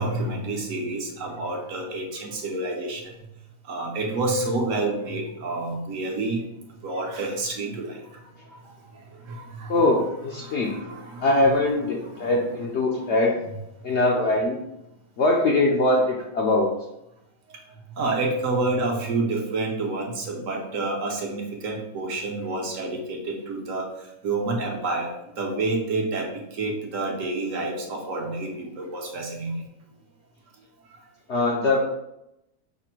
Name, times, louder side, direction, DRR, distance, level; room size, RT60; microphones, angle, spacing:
voice 1, 0.0-3.0 3.7-6.4 6.8-8.0 8.7-8.8 9.3-9.8 10.4-12.7 13.0-13.1 18.0-23.9 24.2-29.6, right 2 dB, 65° right, 1 dB, 1.2 m, -29 dB
voice 2, 9.7-10.8 11.2-13.3 13.8-14.6 15.2-16.7 31.3-31.8, left 2 dB, 60° left, -2 dB, 0.8 m, -22 dB
5.7 x 2.1 x 4.4 m, 0.86 s
omnidirectional pair, 1.6 m